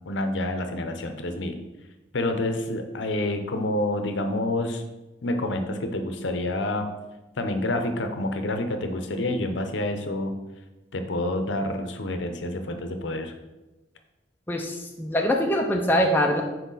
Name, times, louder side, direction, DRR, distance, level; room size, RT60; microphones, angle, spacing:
voice 1, 0.0-1.6 2.1-4.8 5.2-6.9 7.4-10.4 10.9-13.3, left 1 dB, 80° left, 6 dB, 0.7 m, -28 dB
voice 2, 14.5-16.4, equal, 10° left, 1 dB, 0.5 m, -23 dB
6.2 x 4.5 x 4.0 m, 1.1 s
head